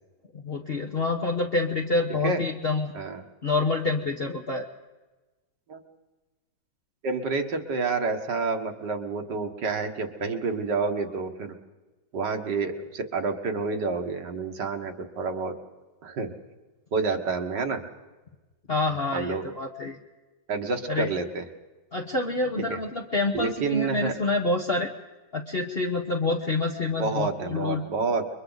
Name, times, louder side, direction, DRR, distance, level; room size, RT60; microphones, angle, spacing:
voice 1, 0.3-2.9 3.4-4.7 18.7-20.0 20.9-21.1 21.9-24.9 25.3-27.8, left 3 dB, 40° left, 1 dB, 1.2 m, -27 dB
voice 2, 7.0-11.6 12.1-15.6 16.0-16.3 16.9-17.8 19.1-19.4 20.5-21.4 22.7-22.8 23.3-24.1 27.0-28.3, right 4 dB, 70° right, 4 dB, 2.1 m, -29 dB
29.5 x 23.0 x 4.0 m, 1.2 s
omnidirectional pair, 1.9 m